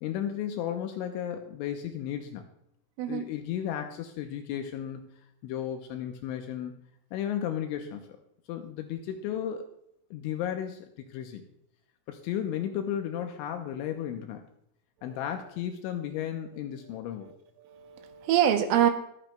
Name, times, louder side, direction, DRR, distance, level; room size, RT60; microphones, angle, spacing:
voice 1, 0.0-2.4 3.1-5.0 5.4-6.8 7.1-8.1 8.5-9.7 10.1-11.4 12.1-14.4 15.0-17.3, left 10 dB, 85° left, 5 dB, 2.9 m, -34 dB
voice 2, 16.9-18.9, right 10 dB, 80° right, 6 dB, 3.3 m, -27 dB
23.0 x 9.0 x 2.3 m, 0.75 s
omnidirectional pair, 6.0 m